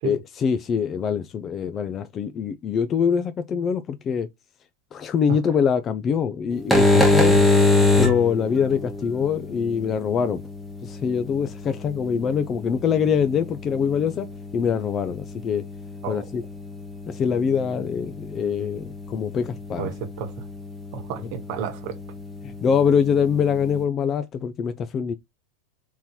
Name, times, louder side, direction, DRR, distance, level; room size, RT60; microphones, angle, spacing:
voice 1, 0.0-4.3 4.9-7.4 8.0-10.4 10.8-14.3 14.5-15.6 16.1-16.4 17.1-19.9 22.4-25.1, left 7 dB, 25° left, 0.4 m, -24 dB
sound 1, 6.5-23.8, left 2 dB, 5° left, 1.0 m, -26 dB
voice 2, 19.8-20.5 20.9-22.0, right 8 dB, 55° right, 1.2 m, -32 dB
3.8 x 3.0 x 4.3 m
supercardioid pair, 135°, 0 cm